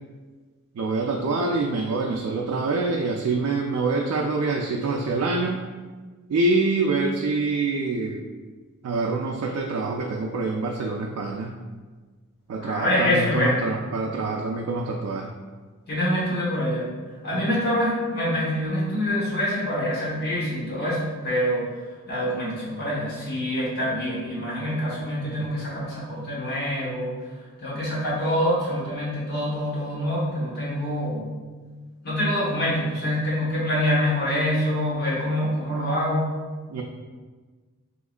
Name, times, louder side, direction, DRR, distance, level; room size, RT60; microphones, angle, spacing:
voice 1, 0.7-5.6 6.3-8.2 8.8-11.5 12.5-15.3 17.3-17.4 25.4-25.5 36.7-36.8, right 3 dB, 75° right, 0 dB, 0.3 m, -25 dB
voice 2, 12.6-13.6 15.9-16.9 17.2-21.6 22.1-27.1 27.6-31.2 32.0-36.3, left 1 dB, 45° left, -6 dB, 1.0 m, -25 dB
3.5 x 2.9 x 2.4 m, 1.4 s
head